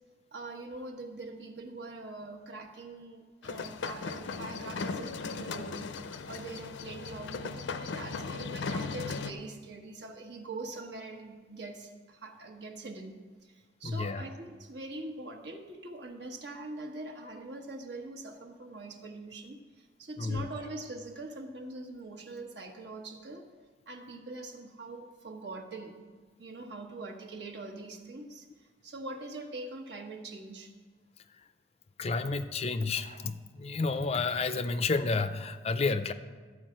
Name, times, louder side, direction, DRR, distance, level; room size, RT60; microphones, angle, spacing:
voice 1, 0.3-5.9 6.3-23.5 23.9-26.0 26.4-28.5 28.8-30.7 32.9-33.2, right 2 dB, 70° right, 2 dB, 1.3 m, -43 dB
sound 1, 3.4-9.3, left 4 dB, 85° left, 0.5 m, -37 dB
voice 2, 13.8-14.2 20.2-20.5 32.0-36.1, left 4 dB, 35° left, 11 dB, 0.4 m, -30 dB
13.0 x 4.8 x 7.6 m, 1.4 s
head